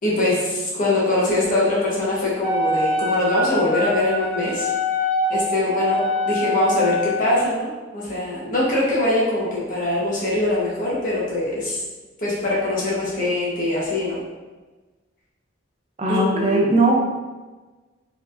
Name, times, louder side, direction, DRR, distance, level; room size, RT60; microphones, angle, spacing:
voice 1, 0.0-4.7 5.3-11.8 12.2-14.2 16.1-16.6, left 2 dB, 45° left, -6 dB, 1.3 m, -23 dB
Wind instrument woodwind instrument, 2.4-7.4, left 1 dB, ahead, 0.8 m, -24 dB
voice 2, 16.0-17.0, right 2 dB, 35° right, -2 dB, 0.6 m, -18 dB
4.5 x 3.4 x 2.6 m, 1.2 s
head